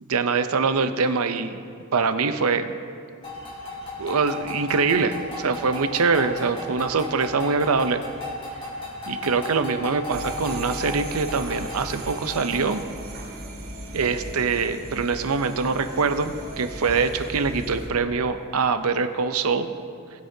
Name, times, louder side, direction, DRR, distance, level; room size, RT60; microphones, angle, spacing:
voice 1, 0.1-1.6 1.9-2.7 4.0-8.0 9.1-12.8 13.9-19.7, right 4 dB, 80° right, 9 dB, 0.6 m, -24 dB
sound 1, 3.2-12.7, left 2 dB, 25° left, 3.1 m, -35 dB
sound 2, 10.1-17.9, right 1 dB, 65° right, 2.8 m, -37 dB
20.5 x 8.0 x 2.8 m, 2.3 s
head